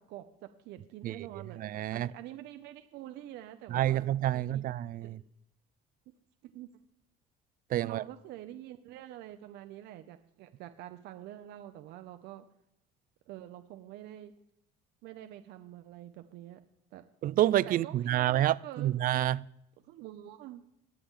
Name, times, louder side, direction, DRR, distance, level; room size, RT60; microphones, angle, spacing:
voice 1, 0.0-1.6 1.9-4.1 4.3-4.7 5.0-5.2 6.1-6.2 6.5-6.8 7.8-12.4 13.3-14.3 15.0-16.6 16.9-17.1 17.7-18.9 19.8-20.6, right 13 dB, 85° right, 0.7 m, -46 dB
voice 2, 1.6-2.1 3.7-5.2 7.7-8.0 17.2-19.4, right 13 dB, 55° right, 0.4 m, -28 dB
21.5 x 8.6 x 3.7 m
cardioid pair, 110°, 17 cm